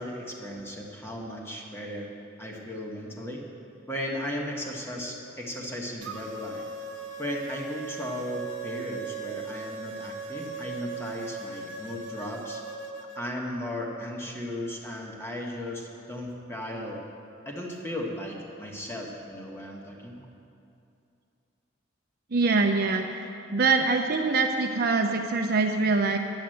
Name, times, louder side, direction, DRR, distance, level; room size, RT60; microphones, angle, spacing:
voice 1, 0.0-2.1 2.4-3.4 3.9-6.6 7.2-12.6 13.1-17.0 17.4-20.2, left 1 dB, 15° left, -1 dB, 1.4 m, -36 dB
sound 1, 6.0-13.2, right 4 dB, 80° right, 1.0 m, -38 dB
voice 2, 22.3-23.2 23.5-26.2, right 3 dB, 55° right, 3 dB, 0.6 m, -24 dB
10.5 x 7.8 x 7.8 m, 2.6 s
head